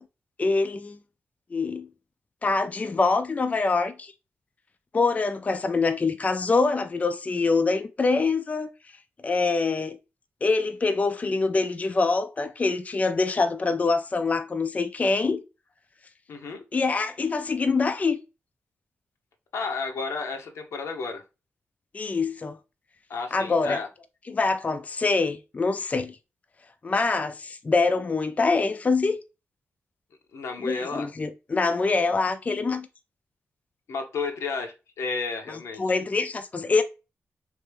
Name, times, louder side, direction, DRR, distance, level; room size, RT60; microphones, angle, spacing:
voice 1, 0.4-1.0 1.5-1.9 2.4-4.1 4.9-8.7 9.2-10.0 10.4-15.4 16.7-18.2 21.9-22.6 23.3-23.8 24.3-26.2 26.8-29.2 30.6-32.9 35.8-36.8, left 3 dB, 30° left, 0.3 m, -25 dB
voice 2, 16.3-16.6 19.5-21.2 23.1-23.9 30.3-31.1 33.9-35.8, left 4 dB, 85° left, 0.7 m, -32 dB
3.2 x 2.5 x 3.3 m
cardioid pair, 80°, 5 cm